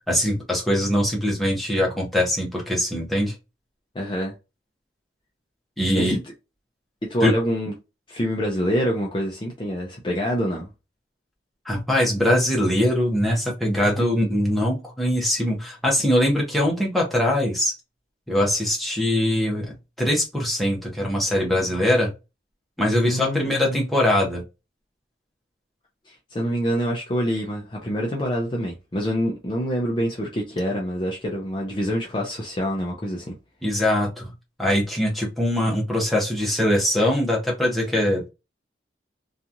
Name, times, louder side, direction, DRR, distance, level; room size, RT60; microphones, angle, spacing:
voice 1, 0.1-3.3 5.8-6.2 7.2-7.3 11.7-17.7 18.3-22.1 22.8-24.4 33.6-34.3 34.6-38.3, left 1 dB, ahead, 0.8 m, -22 dB
voice 2, 3.9-4.3 6.0-6.2 7.0-7.7 8.1-10.7 23.0-23.8 26.1-33.3, equal, 25° left, 0.5 m, -26 dB
2.9 x 2.3 x 2.5 m
head